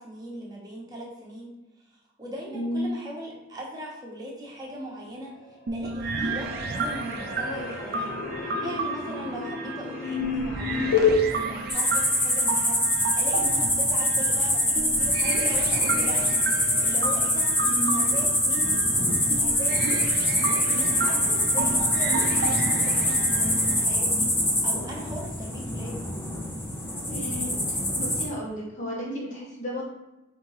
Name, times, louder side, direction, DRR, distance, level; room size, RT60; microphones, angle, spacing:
voice 1, 0.0-1.5 2.2-5.3 5.7-16.4 16.8-18.8 19.1-20.0 20.6-25.9, equal, 20° right, -3 dB, 1.0 m, -39 dB
voice 2, 2.5-2.9 17.7-18.1 27.1-27.6 27.9-29.8, equal, 40° left, -5 dB, 1.3 m, -32 dB
sound 1, 5.2-5.8 6.0-11.2, left 6 dB, 90° left, 0.7 m, -29 dB
sound 2, 5.7-23.8, right 3 dB, 55° right, 0.5 m, -32 dB
sound 3, 11.7-28.2, left 1 dB, 10° left, 0.7 m, -24 dB
5.2 x 2.8 x 3.1 m, 0.99 s
head